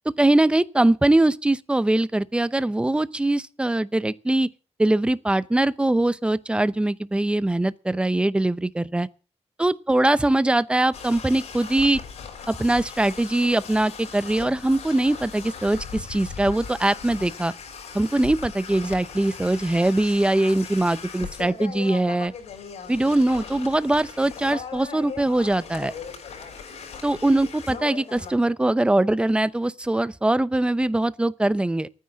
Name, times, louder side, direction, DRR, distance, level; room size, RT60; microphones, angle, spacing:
voice 1, 0.0-4.5 4.8-9.1 9.6-12.0 12.5-17.5 17.9-22.3 22.9-25.9 27.0-31.9, right 1 dB, 10° right, 0.7 m, -22 dB
sound 1, 10.9-28.3, left 6 dB, 85° left, 5.3 m, -39 dB
12.0 x 9.8 x 7.5 m
cardioid pair, 115°, 11 cm